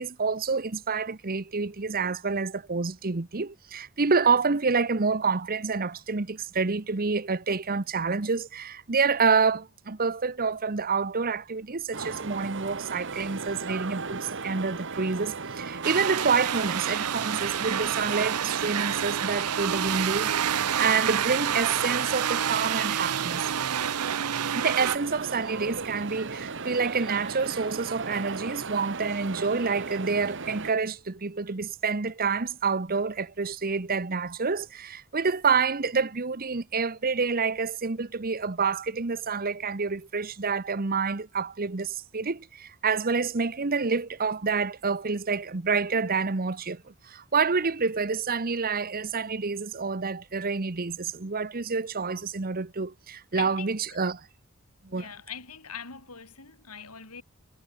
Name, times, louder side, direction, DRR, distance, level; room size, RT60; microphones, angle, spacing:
voice 1, 0.0-23.5 24.5-54.3 54.8-55.1, right 4 dB, 40° right, 1.0 m, -28 dB
sound 1, 11.9-30.7, right 4 dB, 55° right, 1.6 m, -36 dB
sound 2, 15.8-25.0, right 9 dB, 85° right, 0.7 m, -28 dB
voice 2, 53.3-54.0 54.9-57.2, left 7 dB, 85° left, 7.8 m, -42 dB
head